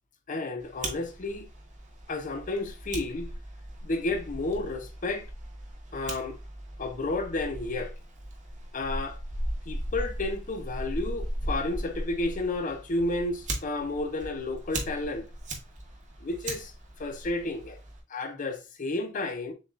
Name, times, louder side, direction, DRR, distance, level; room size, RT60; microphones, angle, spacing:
voice 1, 0.3-1.5 2.1-3.3 3.8-5.3 5.9-6.4 6.8-7.9 8.7-9.2 9.7-15.3 16.2-16.7 17.0-17.8 18.1-19.5, left 2 dB, 40° left, 0.6 m, -31 dB
Fire, 0.6-18.0, right 1 dB, 40° right, 1.0 m, -38 dB
6.9 x 2.3 x 2.4 m
head